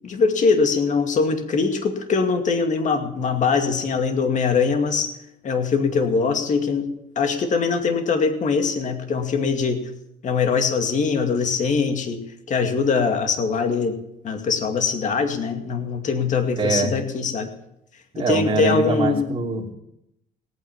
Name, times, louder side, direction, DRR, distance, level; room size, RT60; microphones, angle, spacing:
voice 1, 0.0-5.1 5.4-6.9 7.2-9.8 10.2-12.2 12.5-14.0 14.2-17.5 18.2-19.4, left 5 dB, 45° left, 6 dB, 2.3 m, -22 dB
voice 2, 16.6-16.9 18.1-19.7, right 3 dB, 30° right, -1 dB, 3.0 m, -23 dB
18.0 x 9.2 x 7.3 m, 0.80 s
cardioid pair, 110°, 17 cm